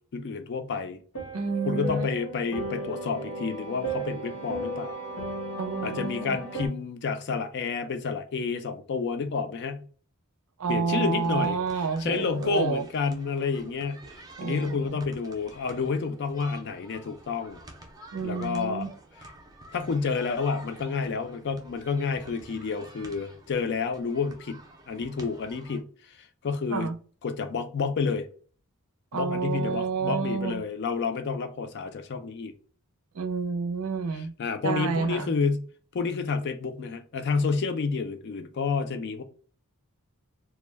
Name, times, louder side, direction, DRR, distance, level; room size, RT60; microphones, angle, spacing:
voice 1, 0.1-1.0 1.7-5.0 5.8-9.9 10.7-11.6 12.0-17.6 18.2-18.9 19.7-24.6 24.9-26.9 27.2-28.3 29.1-32.5 34.1-35.7 35.9-39.2, left 5 dB, 50° left, 0.4 m, -30 dB
sound 1, 1.1-6.7, right 1 dB, 85° left, 0.9 m, -35 dB
voice 2, 1.3-2.1 5.6-6.4 10.6-12.8 14.4-14.8 18.1-18.9 26.7-27.0 29.1-30.6 33.1-34.3 34.6-35.3, right 5 dB, 85° right, 0.5 m, -29 dB
sound 2, 11.1-25.8, right 2 dB, 15° right, 0.4 m, -49 dB
2.2 x 2.1 x 3.2 m
head